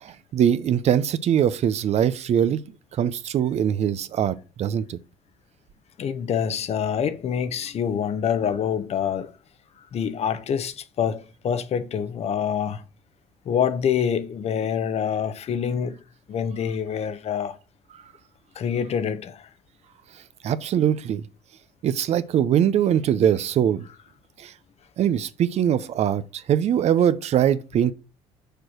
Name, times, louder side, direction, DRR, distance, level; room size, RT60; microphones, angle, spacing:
voice 1, 0.0-2.6 3.0-5.0 20.4-21.2 21.8-23.8 24.4-24.5 25.0-27.9, right 9 dB, 55° right, 0.6 m, -22 dB
voice 2, 6.0-9.3 9.9-12.8 13.5-16.0 16.3-17.6 18.6-19.5, left 8 dB, 50° left, 0.9 m, -26 dB
6.7 x 4.8 x 6.1 m
supercardioid pair, 75°, 13 cm